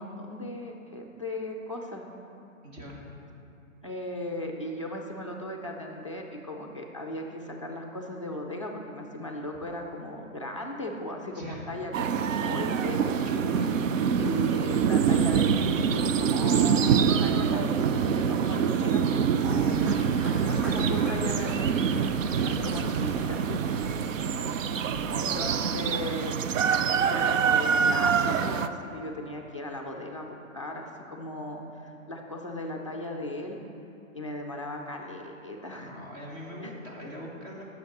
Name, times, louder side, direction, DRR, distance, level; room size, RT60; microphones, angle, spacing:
voice 1, 0.0-2.1 3.8-13.2 14.2-20.0 20.4-21.7 22.6-23.6 25.1-26.4 26.9-33.6 34.1-35.9, left 1 dB, 25° left, 0 dB, 0.4 m, -37 dB
voice 2, 2.6-3.1 11.3-11.7 13.2-13.8 18.4-18.7 20.5-21.2 22.3-22.6 22.9-23.0 35.8-37.7, equal, 30° right, -3 dB, 1.3 m, -42 dB
sound 1, 11.9-28.7, right 7 dB, 70° right, 0.5 m, -25 dB
sound 2, 19.4-25.6, equal, 50° right, 2.2 m, -42 dB
8.3 x 6.5 x 5.2 m, 2.7 s
hypercardioid pair, 165°, 41 cm